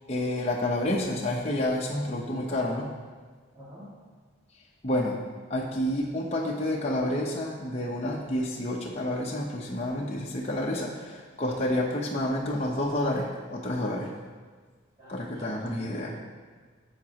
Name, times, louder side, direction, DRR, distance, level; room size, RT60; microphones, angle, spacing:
voice 1, 0.1-2.9 4.8-5.2 5.5-14.1 15.1-16.2, left 1 dB, 30° left, -2 dB, 0.8 m, -29 dB
voice 2, 3.5-3.9 15.0-16.2, equal, 25° right, -12 dB, 2.2 m, -48 dB
11.5 x 7.3 x 2.9 m, 1.5 s
head